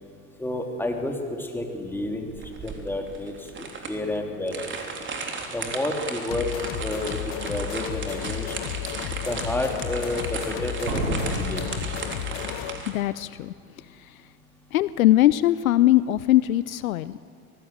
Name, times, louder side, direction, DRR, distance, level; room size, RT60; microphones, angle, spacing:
voice 1, 0.4-4.8 5.5-6.5 6.8-8.6 9.1-11.6, left 1 dB, 5° left, 2 dB, 3.4 m, -30 dB
sound 1, 2.3-12.9, right 4 dB, 25° right, 3.6 m, -35 dB
sound 2, 6.3-12.8, left 14 dB, 45° left, 1.3 m, -33 dB
Slam, 7.7-7.8 8.4-8.8 10.9-12.7 13.0-13.1, right 2 dB, 60° right, 6.7 m, -32 dB
voice 2, 12.9-13.5 14.1-14.2 14.7-17.2, left 14 dB, 65° left, 17 dB, 0.7 m, -21 dB
25.5 x 19.5 x 7.9 m, 2.4 s
figure-of-eight pair, 80°, 45 cm